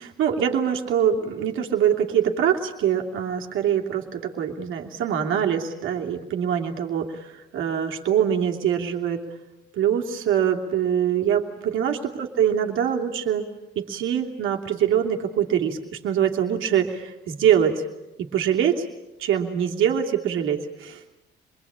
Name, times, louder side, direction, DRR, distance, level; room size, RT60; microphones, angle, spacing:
voice 1, 0.0-9.2 9.7-13.5 13.8-17.9 18.2-18.9 19.2-21.0, right 9 dB, 85° right, 1 dB, 2.8 m, -24 dB
26.5 x 22.0 x 8.8 m, 1.0 s
cardioid pair, 90°, 20 cm